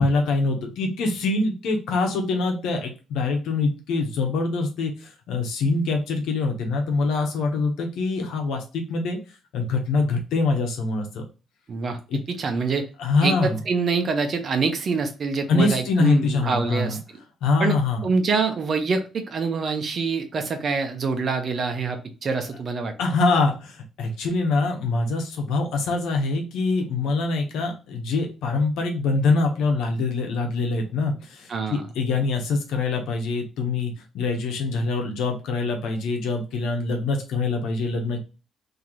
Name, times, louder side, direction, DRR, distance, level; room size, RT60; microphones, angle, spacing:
voice 1, 0.0-9.2 9.5-11.2 12.1-12.2 13.0-13.6 15.5-17.0 17.4-18.1 23.0-38.2, left 3 dB, 85° left, 2 dB, 1.0 m, -24 dB
voice 2, 12.3-12.9 13.2-17.0 17.6-17.8 18.0-22.9 31.5-31.8, right 4 dB, 50° right, 6 dB, 0.8 m, -25 dB
3.0 x 2.9 x 3.8 m, 0.32 s
cardioid pair, 90°, 0 cm